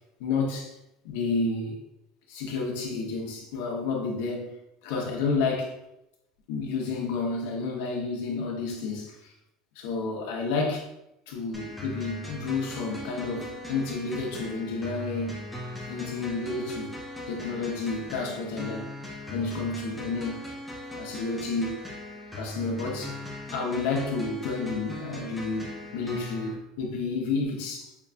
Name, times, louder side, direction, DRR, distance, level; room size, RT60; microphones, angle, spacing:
voice 1, 0.2-0.7 1.0-1.8 2.3-4.5 4.8-5.7 6.5-9.3 9.8-10.9 11.3-15.5 15.9-16.9 17.3-18.9 19.3-20.5 20.9-21.8 22.4-23.2 23.5-27.9, left 4 dB, 80° left, -1 dB, 0.9 m, -30 dB
sound 1, 11.5-26.5, left 1 dB, ahead, 0.6 m, -39 dB
5.7 x 2.5 x 2.3 m, 0.86 s
cardioid pair, 170°, 0 cm